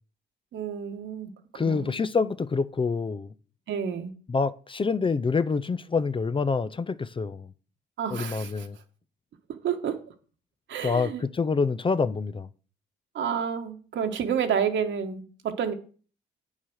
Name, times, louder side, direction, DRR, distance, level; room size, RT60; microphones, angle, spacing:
voice 1, 0.5-2.0 3.7-4.1 8.0-8.7 9.6-10.0 10.7-11.2 13.1-15.7, right 7 dB, 70° right, 1.7 m, -30 dB
voice 2, 1.5-3.3 4.3-7.5 8.1-8.8 10.8-12.5, left 4 dB, 25° left, 0.6 m, -26 dB
8.9 x 7.3 x 6.4 m
cardioid pair, 90°, 20 cm